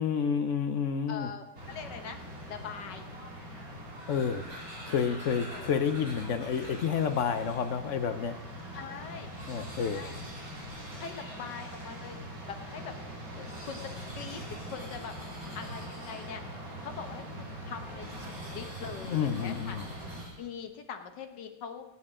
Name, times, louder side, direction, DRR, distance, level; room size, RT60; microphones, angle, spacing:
voice 1, 0.0-1.3 4.1-4.6 4.9-8.4 9.5-10.0 19.0-19.8, left 7 dB, 60° left, 10 dB, 0.9 m, -30 dB
voice 2, 1.1-2.2 2.5-3.1 5.5-5.7 8.7-9.3 9.8-10.2 11.0-12.2 12.5-12.9 13.4-15.1 15.6-16.4 16.8-19.8 20.4-21.8, left 7 dB, 85° left, 6 dB, 1.8 m, -42 dB
sound 1, 1.5-20.2, equal, 55° right, 2.7 m, -43 dB
sound 2, 3.8-7.9 8.4-8.5 8.7-8.8 9.1-12.3 13.2-16.7 18.0-20.7, equal, 90° right, 6.0 m, -49 dB
20.0 x 8.8 x 3.7 m, 0.95 s
omnidirectional pair, 1.8 m